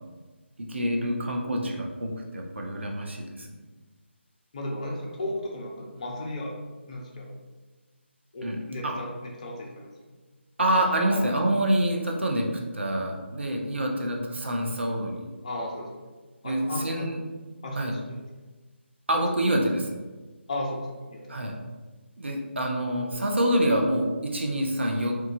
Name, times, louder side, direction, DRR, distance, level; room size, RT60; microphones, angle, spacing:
voice 1, 0.7-3.5 8.4-8.6 8.8-9.0 10.6-12.5 12.7-15.3 16.4-17.2 17.8-17.9 19.1-20.0 21.3-21.6 22.2-25.1, right 1 dB, 65° right, 1 dB, 0.5 m, -26 dB
voice 2, 4.5-6.6 6.9-7.3 8.3-9.9 10.7-11.3 15.4-15.9 16.4-17.1 17.6-18.2 20.5-21.2, left 1 dB, 35° left, -1 dB, 0.5 m, -35 dB
3.0 x 2.2 x 2.5 m, 1.3 s
figure-of-eight pair, 150°, 7 cm